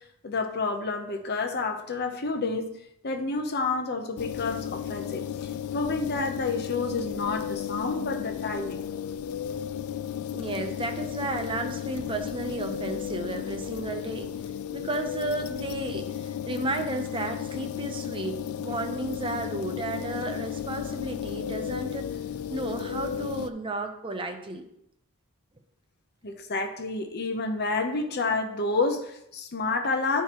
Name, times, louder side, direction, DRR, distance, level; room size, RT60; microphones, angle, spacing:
voice 1, 0.2-2.7 3.0-8.8 26.2-30.2, left 3 dB, 50° left, 5 dB, 0.8 m, -29 dB
sound 1, 4.2-23.5, left 9 dB, 80° left, 0.4 m, -34 dB
voice 2, 10.3-14.3 14.7-22.1 22.5-24.6, right 2 dB, 25° right, 6 dB, 0.6 m, -33 dB
11.5 x 4.6 x 3.0 m, 0.77 s
head